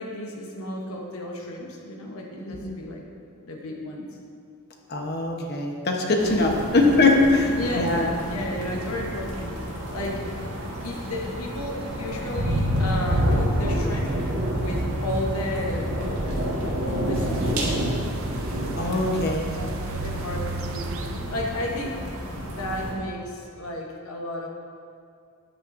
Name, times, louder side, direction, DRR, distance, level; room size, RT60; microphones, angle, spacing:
voice 1, 0.0-3.0 3.4-4.2 7.3-10.2 10.8-14.2 14.6-16.1 16.6-17.7 18.9-19.2 19.5-22.0 22.5-24.5, left 1 dB, 75° left, 0 dB, 1.0 m, -33 dB
voice 2, 4.9-7.2 7.8-8.1 10.6-10.7 18.8-19.6, left 3 dB, 50° left, 1 dB, 1.0 m, -22 dB
sound 1, 6.2-22.9, equal, 80° right, 1.4 m, -29 dB
sound 2, 17.1-21.5, right 3 dB, 65° right, 0.5 m, -34 dB
9.7 x 8.7 x 2.6 m, 2.3 s
head